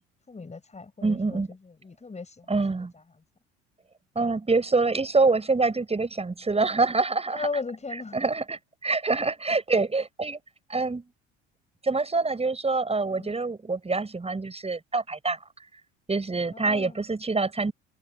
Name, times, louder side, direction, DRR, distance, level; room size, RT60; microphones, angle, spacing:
voice 1, 0.3-2.5 7.3-8.3 13.0-13.3 16.5-17.0, left 4 dB, 20° left, 6.2 m, -36 dB
voice 2, 1.0-1.5 2.5-2.9 4.1-7.5 8.1-10.4 10.7-11.0 11.8-15.4 16.1-17.7, right 3 dB, 15° right, 7.8 m, -25 dB
figure-of-eight pair, 60°, 35 cm